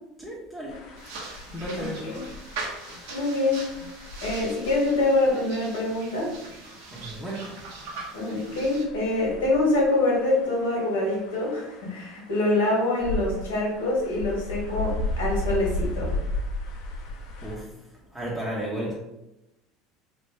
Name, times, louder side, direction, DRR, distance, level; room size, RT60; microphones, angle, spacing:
voice 1, 0.2-0.9 1.5-2.1 6.9-7.6 17.4-18.9, right 1 dB, 10° right, -5 dB, 0.8 m, -34 dB
sound 1, 0.7-17.6, left 2 dB, 65° left, 0.7 m, -36 dB
sound 2, 1.0-8.8, right 3 dB, 75° right, 0.8 m, -41 dB
voice 2, 1.8-2.2 3.1-3.6 4.2-6.3 8.1-16.1, left 2 dB, 80° left, -3 dB, 1.3 m, -25 dB
3.0 x 2.6 x 3.2 m, 0.92 s
hypercardioid pair, 80°, 0 cm